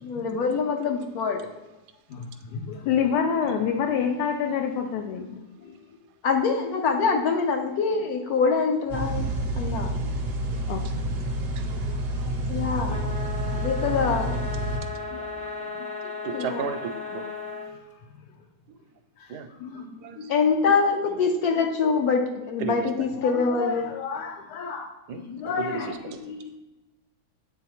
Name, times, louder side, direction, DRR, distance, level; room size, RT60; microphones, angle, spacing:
voice 1, 0.0-1.5 6.2-9.3 9.6-9.9 12.5-13.1 13.5-14.4 16.3-16.6 20.3-23.8, left 5 dB, 70° left, 3 dB, 1.1 m, -24 dB
voice 2, 2.1-5.8 10.7-10.8 12.1-12.4 15.1-15.2 15.8-16.1 19.2-20.3 23.2-26.6, left 7 dB, 85° left, 3 dB, 1.2 m, -30 dB
sound 1, 8.9-14.8, right 1 dB, 55° right, 0.7 m, -29 dB
sound 2, 12.9-17.7, left 4 dB, 10° left, 0.3 m, -35 dB
voice 3, 14.5-15.8 16.2-17.2 18.7-18.8 19.3-19.5 19.7-20.3 22.6-22.9 25.1-25.2 25.6-26.0, right 7 dB, 80° right, 8 dB, 1.1 m, -35 dB
7.9 x 3.9 x 3.0 m, 1.1 s
omnidirectional pair, 1.7 m